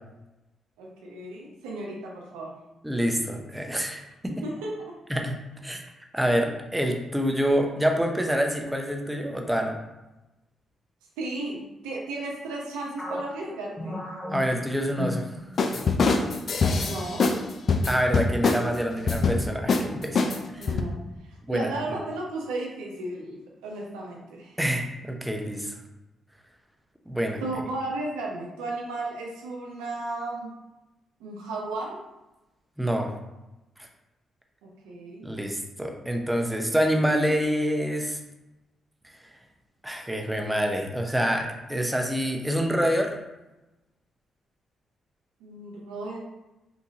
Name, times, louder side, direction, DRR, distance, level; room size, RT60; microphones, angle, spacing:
voice 1, 0.8-2.6 4.4-5.0 11.2-14.1 16.8-17.3 20.6-21.0 21.2-24.6 27.4-30.5 31.2-32.0 34.6-35.3 45.4-46.2, right 2 dB, 85° right, -1 dB, 0.6 m, -34 dB
voice 2, 2.8-4.3 5.1-5.8 6.1-9.8 14.3-15.4 15.8-15.9 17.8-20.2 20.5-20.8 21.5-21.7 24.6-25.8 27.1-27.4 32.8-33.1 33.8-33.9 35.2-38.2 39.1-39.2 39.8-43.1, equal, 5° right, 2 dB, 0.7 m, -27 dB
sound 1, 13.0-15.8 16.1-16.4 17.0-17.5, left 1 dB, 15° left, 1.1 m, -36 dB
sound 2, 15.6-17.4 17.7-18.7 19.1-19.4 19.7-19.9 20.2-20.8, left 4 dB, 55° left, 0.4 m, -23 dB
3.7 x 2.7 x 2.7 m, 0.97 s
hypercardioid pair, 45°, 0 cm